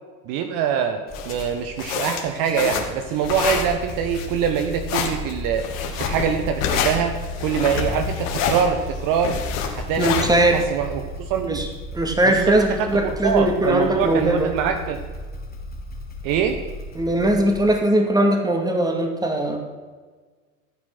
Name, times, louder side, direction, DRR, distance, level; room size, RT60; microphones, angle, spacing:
voice 1, 0.3-5.7 6.0-9.4 9.7-11.6 12.2-15.0 16.2-16.6, right 7 dB, 45° right, 6 dB, 1.4 m, -24 dB
sound 1, 1.1-10.6, left 6 dB, 60° left, 2.5 m, -27 dB
Motorcycle / Engine starting, 1.1-1.7 3.1-18.0, left 2 dB, 20° left, 2.5 m, -35 dB
voice 2, 10.0-10.6 11.5-11.7 11.9-14.5 17.0-19.6, right 1 dB, 10° right, 4 dB, 2.4 m, -20 dB
14.5 x 9.5 x 6.1 m, 1.4 s
figure-of-eight pair, 85°, 44 cm